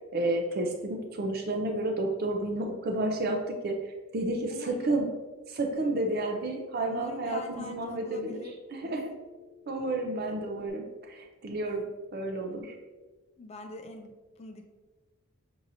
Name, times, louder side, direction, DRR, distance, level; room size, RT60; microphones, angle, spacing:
voice 1, 0.1-5.1 5.5-8.4 8.7-9.1 9.7-12.8, right 2 dB, 45° right, 3 dB, 0.4 m, -31 dB
voice 2, 4.5-5.0 6.9-8.5 8.8-9.0 13.4-14.6, left 2 dB, 30° left, 4 dB, 0.4 m, -43 dB
Telephone, 5.7-10.7, left 6 dB, 75° left, 0.7 m, -56 dB
6.1 x 2.8 x 2.6 m, 1.2 s
head